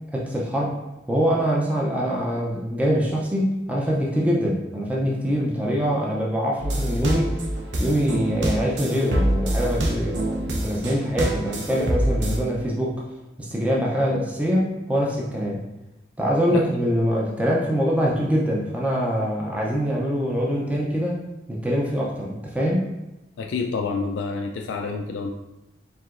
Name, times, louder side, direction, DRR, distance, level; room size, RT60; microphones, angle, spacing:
voice 1, 0.1-0.7 1.1-7.3 7.8-13.0 13.4-15.6 16.2-21.2 21.5-22.9, equal, 10° right, -3 dB, 0.5 m, -24 dB
sound 1, 6.6-12.4, right 1 dB, 80° right, 0.8 m, -25 dB
voice 2, 23.4-25.3, left 4 dB, 90° left, 2 dB, 0.4 m, -28 dB
4.7 x 3.7 x 2.5 m, 0.99 s
head